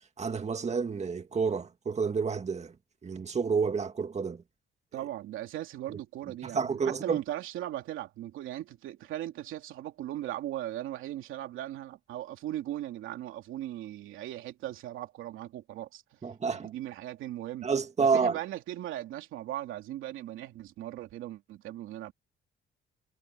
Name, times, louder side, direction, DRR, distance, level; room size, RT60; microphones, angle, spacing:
voice 1, 0.2-2.7 3.0-4.4 6.4-7.2 16.2-16.7 17.6-18.4, right 5 dB, 35° right, 2.0 m, -29 dB
voice 2, 4.9-16.2 16.5-17.7 18.0-22.1, right 13 dB, 90° right, 2.9 m, -38 dB
cardioid pair, 90°, 20 cm